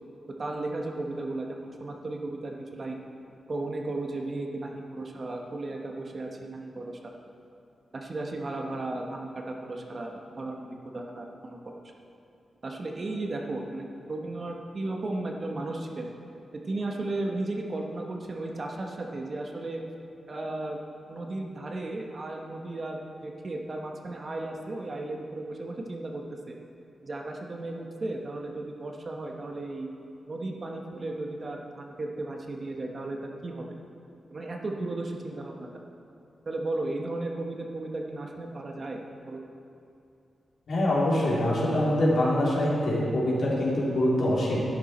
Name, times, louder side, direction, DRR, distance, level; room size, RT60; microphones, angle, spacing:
voice 1, 0.4-3.0 3.5-7.1 7.9-11.8 12.6-16.1 16.7-19.8 20.3-20.8 21.1-26.5 27.0-29.9 30.3-33.6 34.3-35.7 36.5-39.4, right 2 dB, 40° right, 1 dB, 1.1 m, -35 dB
voice 2, 40.7-44.6, left 1 dB, 65° left, -6 dB, 3.0 m, -24 dB
11.5 x 9.9 x 4.3 m, 2.6 s
wide cardioid pair, 120°, 0 cm